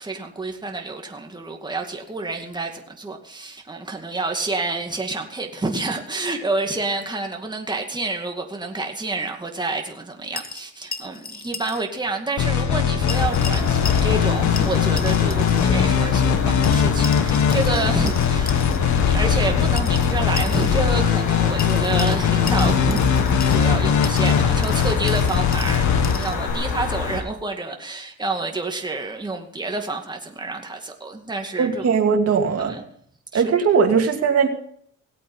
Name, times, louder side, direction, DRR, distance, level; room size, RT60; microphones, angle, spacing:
voice 1, 0.0-32.0 32.6-32.8 33.3-33.4, right 3 dB, 15° right, 2.2 m, -29 dB
sound 1, 10.4-11.8 12.1-12.2 13.1-14.3 14.6-15.7 16.6-18.8 19.8-20.8 21.6-23.7 24.0-26.4, left 4 dB, 30° left, 1.4 m, -35 dB
sound 2, 12.4-26.5, left 7 dB, 70° left, 1.5 m, -20 dB
sound 3, 13.1-27.2, left 6 dB, 85° left, 2.0 m, -27 dB
voice 2, 31.6-32.8 33.3-34.5, right 5 dB, 50° right, 2.6 m, -19 dB
18.0 x 8.4 x 5.5 m
cardioid pair, 90°, 30 cm